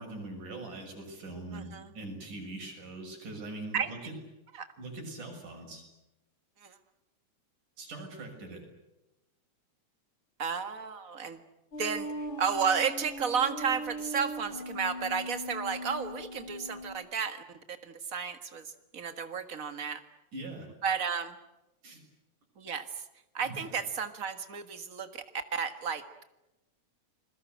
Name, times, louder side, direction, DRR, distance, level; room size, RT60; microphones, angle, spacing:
voice 1, 0.0-4.2 4.8-5.8 7.8-8.6 20.3-20.7 21.8-22.0 23.4-23.8, right 2 dB, 90° right, 2 dB, 8.0 m, -42 dB
voice 2, 1.5-1.9 3.7-3.9 4.6-4.7 6.6-6.8 10.4-11.4 11.8-20.0 20.8-21.3 22.6-23.0 23.3-25.2 25.5-26.2, right 6 dB, 35° right, 9 dB, 1.5 m, -33 dB
sound 1, 11.7-17.0, equal, 40° left, 4.3 m, -40 dB
29.5 x 21.5 x 8.1 m, 0.96 s
omnidirectional pair, 3.5 m